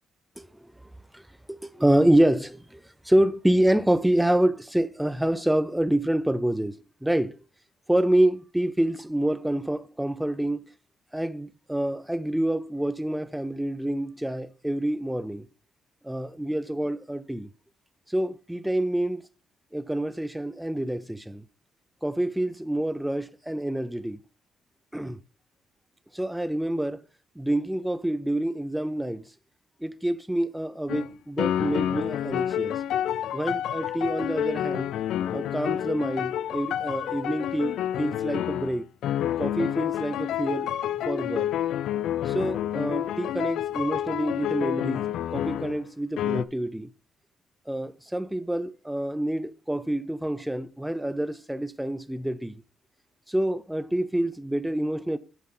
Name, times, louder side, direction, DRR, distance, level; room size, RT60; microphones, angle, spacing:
voice 1, 1.5-2.8 3.0-7.4 7.9-10.7 11.1-15.5 16.0-17.5 18.1-19.2 19.7-21.4 22.0-24.2 24.9-25.2 26.1-27.0 27.4-29.3 29.8-32.8 33.3-34.9 35.3-38.9 39.4-40.7 41.1-41.5 42.2-45.1 45.3-46.9 47.7-52.6 53.3-55.2, right 1 dB, 5° right, 0.6 m, -27 dB
sound 1, 30.9-31.1 31.4-45.8 46.2-46.4, left 11 dB, 80° left, 0.4 m, -29 dB
7.6 x 7.5 x 4.0 m
cardioid pair, 90°, 0 cm